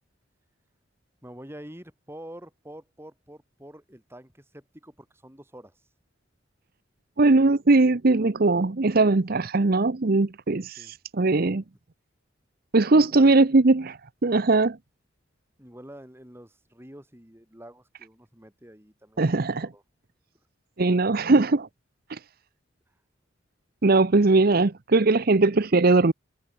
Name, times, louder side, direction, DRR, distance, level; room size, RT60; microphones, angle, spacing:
voice 1, 1.2-5.8 10.8-11.0 13.0-13.4 15.6-19.4 19.6-19.8, right 1 dB, 10° right, 4.5 m, -46 dB
voice 2, 7.2-11.6 12.7-14.8 19.2-19.7 20.8-21.7 22.1-22.2 23.8-26.1, right 3 dB, 50° right, 0.8 m, -20 dB
head